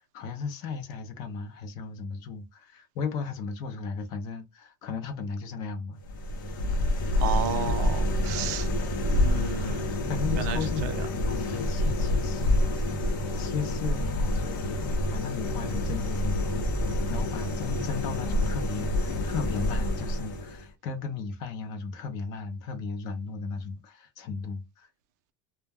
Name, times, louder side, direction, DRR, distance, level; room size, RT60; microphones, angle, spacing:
voice 1, 0.0-6.0 10.1-12.6 13.4-14.8 15.1-16.4 17.1-24.9, left 5 dB, 35° left, 0.5 m, -35 dB
sound 1, 6.0-20.7, left 1 dB, 80° left, 0.7 m, -28 dB
voice 2, 7.2-8.7 9.0-11.1, right 7 dB, 60° right, 0.5 m, -33 dB
2.1 x 2.1 x 3.3 m
supercardioid pair, 175°, 11 cm